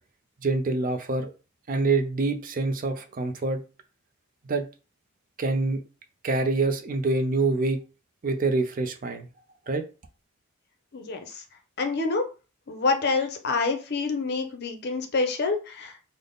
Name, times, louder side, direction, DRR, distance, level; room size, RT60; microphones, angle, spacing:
voice 1, 0.4-1.3 1.7-3.6 4.4-4.7 5.4-5.8 6.2-7.8 8.2-9.3 9.7-9.8, right 3 dB, 40° right, 0.4 m, -26 dB
voice 2, 10.9-11.4 11.8-12.2 12.7-16.1, left 3 dB, 50° left, 0.6 m, -27 dB
3.4 x 2.1 x 3.8 m
head